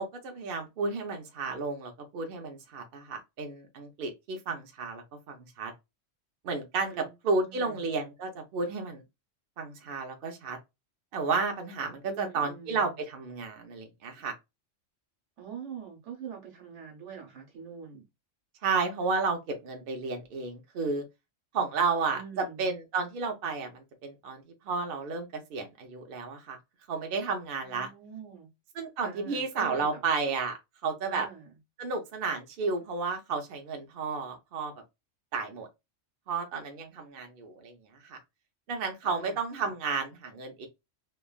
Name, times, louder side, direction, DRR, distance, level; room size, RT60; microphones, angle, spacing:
voice 1, 0.0-5.7 6.4-9.0 9.6-10.6 11.1-14.3 18.6-21.0 21.5-26.6 26.9-27.9 28.8-31.3 31.8-34.7 35.3-35.7 36.3-37.7 38.0-38.2 38.7-40.7, right 4 dB, 55° right, 0.7 m, -32 dB
voice 2, 7.4-7.8 12.0-13.0 15.4-18.0 22.1-22.7 27.6-28.5 29.0-30.0 31.1-31.6 39.0-39.7, right 7 dB, 75° right, 1.3 m, -45 dB
3.2 x 2.2 x 2.2 m
omnidirectional pair, 1.3 m